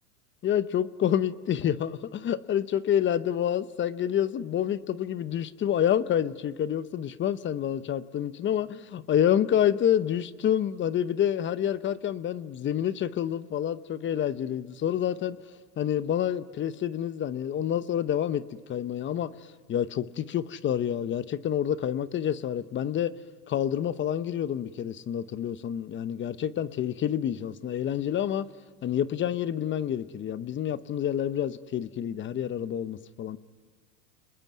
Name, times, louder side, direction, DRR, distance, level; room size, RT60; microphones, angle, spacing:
voice 1, 0.4-15.4 15.8-19.3 19.7-23.1 23.5-28.5 28.8-33.4, left 10 dB, 25° left, 15 dB, 0.8 m, -28 dB
29.5 x 20.0 x 9.4 m, 1.5 s
hypercardioid pair, 115°, 48 cm